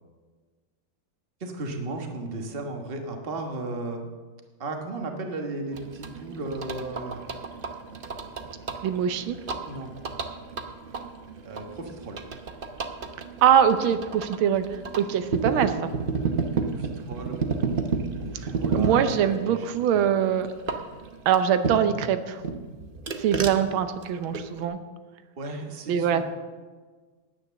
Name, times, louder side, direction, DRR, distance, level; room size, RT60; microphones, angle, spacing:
voice 1, 1.4-4.0 4.6-7.3 9.6-9.9 11.4-12.2 16.5-17.4 18.2-19.7 19.9-20.1 25.4-26.2, right 2 dB, 30° right, 3 dB, 1.3 m, -35 dB
sound 1, 5.7-22.0 22.4-24.6, right 4 dB, 55° right, 0.6 m, -32 dB
voice 2, 8.8-9.4 13.4-14.7 15.0-15.9 18.7-20.5 21.3-22.4 23.2-24.8 25.9-26.2, right 9 dB, 85° right, 10 dB, 1.6 m, -23 dB
9.8 x 9.6 x 6.9 m, 1.4 s
omnidirectional pair, 2.2 m